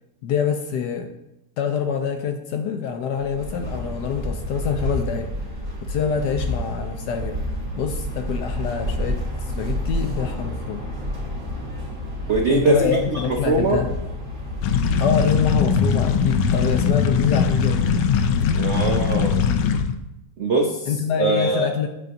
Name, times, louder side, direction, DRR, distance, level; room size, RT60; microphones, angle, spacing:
voice 1, 0.2-1.1 1.6-5.3 5.8-7.4 7.8-10.8 12.5-13.9 15.0-17.8 20.9-21.9, left 7 dB, 70° left, 5 dB, 1.0 m, -25 dB
sound 1, 3.2-18.9, equal, 45° right, 1.7 m, -30 dB
voice 2, 12.3-13.8 18.5-19.4 20.4-20.9 21.2-21.7, right 3 dB, 80° right, 1 dB, 0.6 m, -22 dB
sound 2, 14.6-20.0, left 6 dB, 90° left, 1.4 m, -20 dB
8.0 x 6.6 x 2.6 m, 0.89 s
omnidirectional pair, 2.1 m